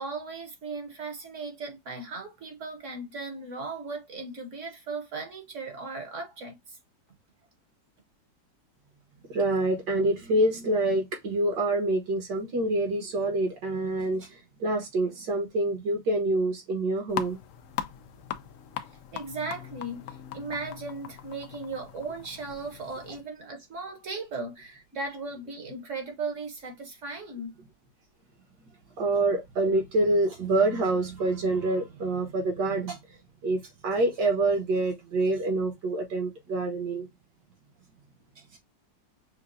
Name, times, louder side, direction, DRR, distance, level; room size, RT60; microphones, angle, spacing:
voice 1, 0.0-6.8 19.1-27.5, right 3 dB, 50° right, 1.2 m, -37 dB
voice 2, 9.3-17.4 29.0-33.0 33.4-37.1, right 2 dB, 70° right, 2.0 m, -26 dB
sound 1, 17.1-23.2, left 10 dB, 80° left, 0.7 m, -40 dB
6.5 x 2.3 x 2.6 m
omnidirectional pair, 1.9 m